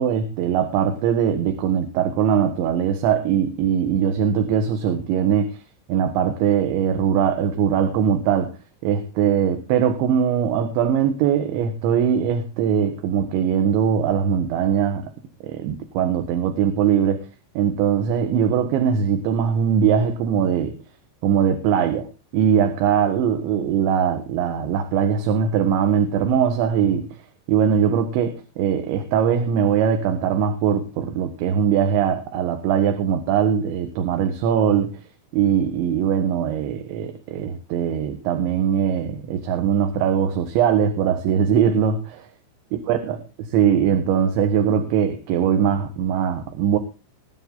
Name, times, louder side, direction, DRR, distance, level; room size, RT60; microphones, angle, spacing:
voice 1, 0.0-5.6 5.9-8.5 8.8-15.1 15.4-17.2 17.6-20.8 21.2-22.1 22.3-27.1 27.5-35.0 35.3-42.3 42.9-43.2 43.5-46.8, right 8 dB, 75° right, 6 dB, 3.8 m, -21 dB
21.0 x 9.9 x 3.9 m, 0.30 s
omnidirectional pair, 5.3 m